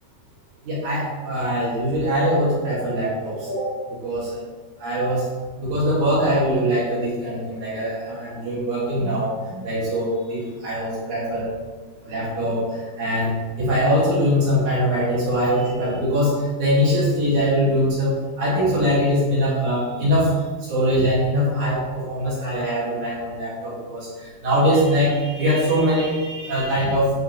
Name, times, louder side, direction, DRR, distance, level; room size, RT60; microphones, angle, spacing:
voice 1, 0.7-3.7 4.0-4.3 4.8-5.2 5.6-11.5 12.0-20.3 20.7-27.1, equal, 55° right, -7 dB, 2.4 m, -22 dB
11.0 x 4.9 x 2.8 m, 1.4 s
omnidirectional pair, 5.0 m